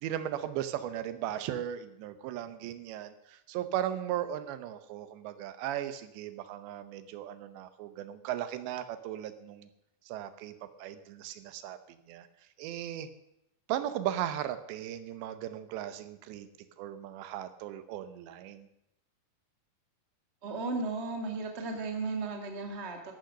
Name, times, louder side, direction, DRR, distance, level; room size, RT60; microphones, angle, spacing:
voice 1, 0.0-9.7 10.1-11.8 12.1-12.3 12.6-13.1 13.7-16.5 16.8-18.7, right 11 dB, 80° right, 11 dB, 3.0 m, -37 dB
voice 2, 20.4-23.1, right 3 dB, 55° right, 3 dB, 0.7 m, -35 dB
13.5 x 11.5 x 6.5 m, 0.83 s
omnidirectional pair, 5.3 m